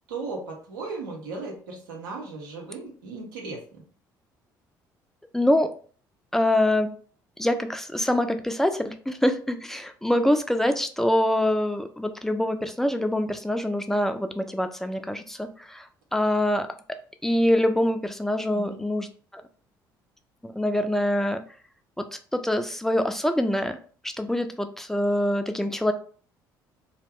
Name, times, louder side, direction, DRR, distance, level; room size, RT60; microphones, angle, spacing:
voice 1, 0.1-3.8 18.5-18.8, right 3 dB, 80° right, 0 dB, 0.7 m, -36 dB
voice 2, 5.3-5.7 6.3-6.9 7.4-15.8 16.1-16.7 17.2-19.1 20.4-21.4 22.0-22.1 22.3-23.8 24.2-25.9, left 1 dB, 5° left, 7 dB, 0.4 m, -24 dB
2.3 x 2.0 x 3.4 m, 0.43 s
figure-of-eight pair, 50°, 10 cm